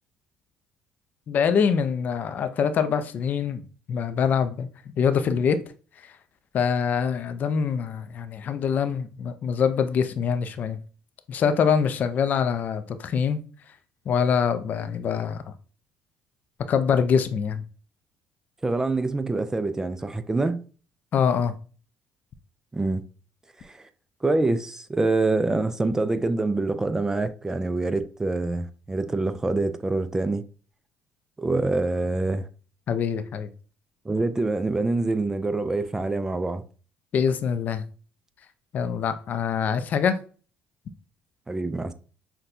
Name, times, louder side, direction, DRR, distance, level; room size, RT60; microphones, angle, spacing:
voice 1, 1.3-3.6 3.9-4.7 5.0-5.6 6.0-6.1 6.5-10.8 11.3-13.4 14.1-15.4 16.7-17.6 21.1-21.5 32.9-33.5 37.1-37.8 38.7-40.2, left 7 dB, 50° left, 0.4 m, -24 dB
voice 2, 18.6-20.6 22.7-23.0 23.6-23.9 24.2-30.4 31.4-32.5 34.1-36.6 41.5-41.9, right 2 dB, 15° right, 0.3 m, -25 dB
5.8 x 2.2 x 2.5 m
cardioid pair, 95°, 4 cm